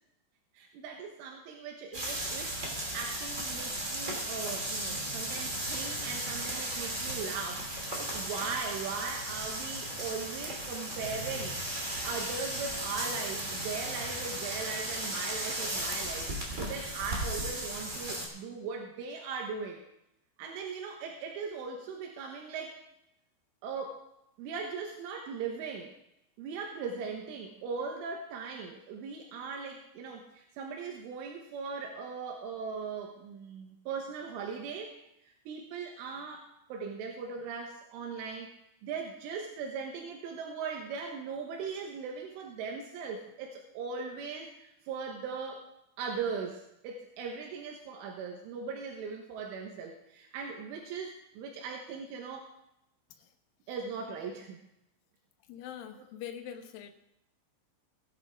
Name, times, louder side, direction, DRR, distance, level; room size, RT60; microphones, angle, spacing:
voice 1, 0.6-2.6 2.9-19.8 20.4-22.8 23.6-24.1 24.4-25.9 26.4-35.0 35.5-38.5 38.8-45.7 46.0-52.5 53.7-54.6, right 5 dB, 85° right, 1 dB, 3.8 m, -39 dB
sound 1, 1.9-18.3, right 1 dB, 20° right, 2.1 m, -36 dB
voice 2, 55.5-56.9, left 9 dB, 70° left, 5 dB, 2.3 m, -43 dB
18.0 x 11.0 x 3.7 m, 0.82 s
omnidirectional pair, 5.5 m